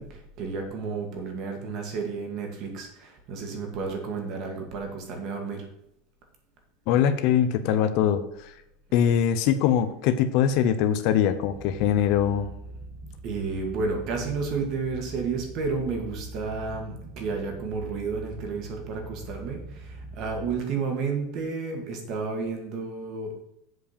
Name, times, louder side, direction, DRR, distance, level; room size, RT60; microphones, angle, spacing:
voice 1, 0.0-5.7 13.2-23.4, right 4 dB, 45° right, 3 dB, 2.2 m, -31 dB
voice 2, 6.9-8.2 8.9-12.5, left 9 dB, 50° left, 11 dB, 0.8 m, -22 dB
sound 1, 11.6-20.5, right 2 dB, 20° right, 1.4 m, -42 dB
7.8 x 5.2 x 6.7 m, 0.83 s
supercardioid pair, 160°, 0 cm